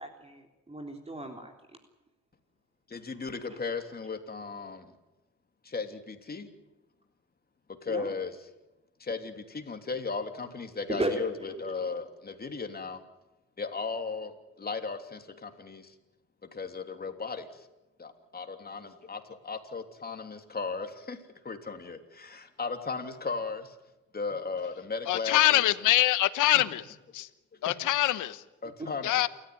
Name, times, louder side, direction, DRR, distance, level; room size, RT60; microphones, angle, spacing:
voice 1, 0.0-1.5 7.9-8.1 10.9-11.8 28.8-28.9, right 1 dB, 20° right, 3 dB, 3.6 m, -35 dB
voice 2, 2.9-4.9 5.6-6.5 7.8-8.4 9.0-13.0 13.6-15.9 16.4-17.7 18.0-23.7 24.1-25.6 27.5-27.7 28.6-29.2, left 4 dB, 30° left, 6 dB, 3.2 m, -36 dB
voice 3, 25.1-26.9 27.1-27.3 27.6-28.4 29.0-29.3, left 15 dB, 85° left, 14 dB, 1.2 m, -24 dB
28.5 x 14.5 x 9.6 m, 1.0 s
cardioid pair, 90°, 30 cm